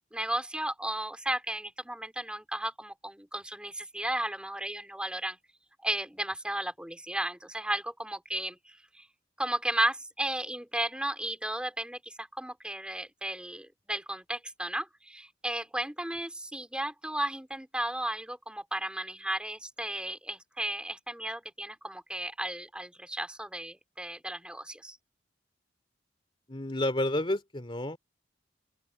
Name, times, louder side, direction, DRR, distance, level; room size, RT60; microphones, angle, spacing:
voice 1, 0.1-5.4 5.8-9.1 9.4-25.0, right 1 dB, 5° right, 3.9 m, -34 dB
voice 2, 26.5-28.0, left 1 dB, 30° left, 2.6 m, -30 dB
open air
head